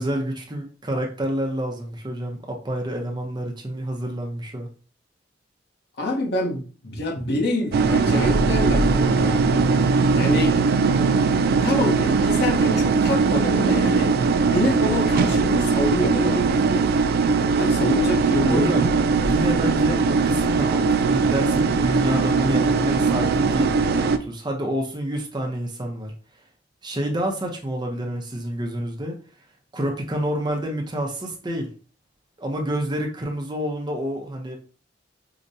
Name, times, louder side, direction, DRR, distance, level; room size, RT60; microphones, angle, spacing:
voice 1, 0.0-4.7 18.5-18.9 19.1-26.1 26.8-29.2 29.7-31.7 32.4-34.6, equal, 25° right, 0.6 m, -28 dB
voice 2, 6.0-9.4 10.1-10.6 11.0-11.1 11.5-14.1 14.5-16.9 17.6-18.9, left 1 dB, 60° left, 0.9 m, -26 dB
sound 1, 7.7-24.2, right 4 dB, 55° right, 0.3 m, -20 dB
4.8 x 2.1 x 2.7 m
head